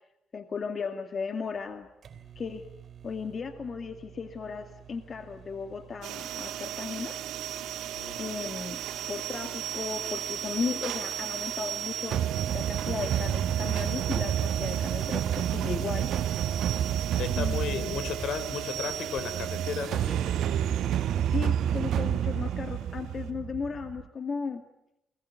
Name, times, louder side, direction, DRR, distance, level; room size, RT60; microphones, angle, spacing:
voice 1, 0.3-1.9 2.4-2.6 3.0-7.2 8.2-8.8 9.1-12.2 12.5-16.1 17.4-18.1 21.3-24.6, left 5 dB, 45° left, 8 dB, 2.1 m, -35 dB
sound 1, 1.5-18.4, right 8 dB, 55° right, 4.2 m, -51 dB
sound 2, 6.0-23.3, right 11 dB, 90° right, 3.1 m, -37 dB
sound 3, 12.1-24.0, right 10 dB, 70° right, 1.4 m, -29 dB
voice 2, 17.2-20.2, left 7 dB, 75° left, 13 dB, 4.3 m, -34 dB
28.5 x 21.0 x 9.5 m, 0.85 s
cardioid pair, 90°, 0 cm